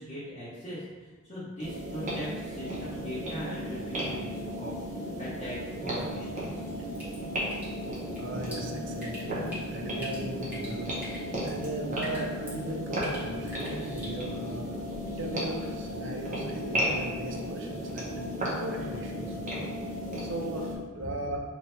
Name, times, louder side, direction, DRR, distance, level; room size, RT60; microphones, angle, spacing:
voice 1, 0.0-4.8 5.2-6.6, equal, 30° left, -11 dB, 0.8 m, -40 dB
sound 1, 1.6-20.8, equal, 40° right, 0.9 m, -34 dB
Drip, 6.7-14.1, equal, 10° right, 1.1 m, -45 dB
voice 2, 8.2-9.3 9.7-11.0 11.4-14.7 15.1-18.2 18.6-19.8 20.2-21.4, right 1 dB, 65° right, 2 dB, 0.5 m, -38 dB
3.1 x 2.7 x 4.2 m, 1.3 s
head